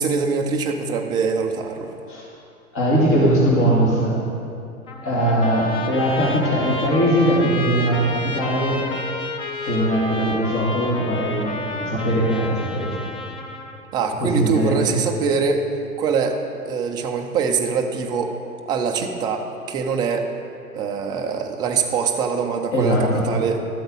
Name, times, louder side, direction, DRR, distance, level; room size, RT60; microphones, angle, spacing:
voice 1, 0.0-1.9 13.9-15.6 16.0-16.4 16.7-18.4 18.7-20.3 20.7-23.6, right 5 dB, 10° right, 3 dB, 0.3 m, -23 dB
voice 2, 2.7-4.2 5.0-8.8 9.6-13.0 14.2-14.9 22.7-23.3, right 1 dB, 30° left, -4 dB, 2.4 m, -20 dB
Trumpet, 4.9-13.8, left 2 dB, 10° left, 0.7 m, -31 dB
12.5 x 7.8 x 5.3 m, 2.6 s
figure-of-eight pair, 100°, 44 cm